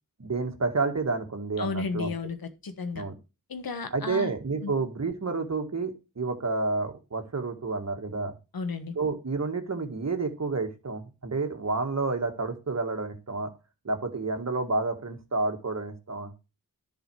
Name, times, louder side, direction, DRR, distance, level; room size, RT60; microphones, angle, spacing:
voice 1, 0.2-2.1 2.9-3.1 3.9-8.3 9.0-13.5 13.8-16.3, right 3 dB, 45° right, 6 dB, 1.8 m, -30 dB
voice 2, 1.6-3.1 3.5-4.3 4.6-4.7 8.5-8.9, left 4 dB, 75° left, 9 dB, 1.4 m, -33 dB
10.5 x 5.1 x 4.7 m, 0.29 s
cardioid pair, 65°, 36 cm